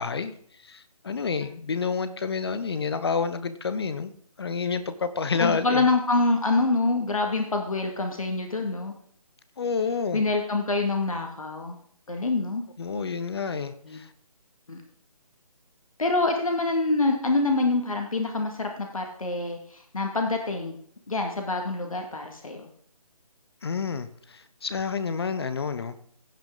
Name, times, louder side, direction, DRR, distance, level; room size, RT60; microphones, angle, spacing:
voice 1, 0.0-4.1 4.4-5.9 9.6-10.2 12.8-14.1 23.6-26.0, left 5 dB, 45° left, 12 dB, 0.8 m, -29 dB
voice 2, 5.4-8.9 10.1-11.8 12.1-12.6 13.9-14.0 14.7-14.8 16.0-19.6 19.9-20.8 21.1-22.7, left 3 dB, 65° left, 3 dB, 2.1 m, -26 dB
16.0 x 5.9 x 3.8 m, 0.62 s
figure-of-eight pair, 150°, 19 cm